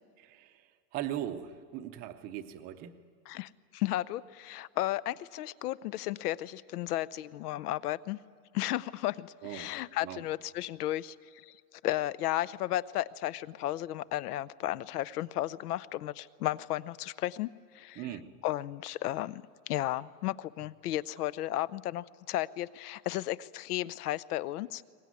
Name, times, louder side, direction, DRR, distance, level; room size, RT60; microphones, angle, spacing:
voice 1, 0.9-2.9 9.4-9.7 10.0-10.2 18.0-18.3, right 11 dB, 20° right, 9 dB, 0.6 m, -39 dB
voice 2, 3.3-8.2 8.5-11.5 11.8-17.5 17.7-18.1 18.4-24.8, left 15 dB, 80° left, 20 dB, 0.8 m, -34 dB
23.0 x 20.0 x 9.5 m, 2.1 s
supercardioid pair, 175°, 45 cm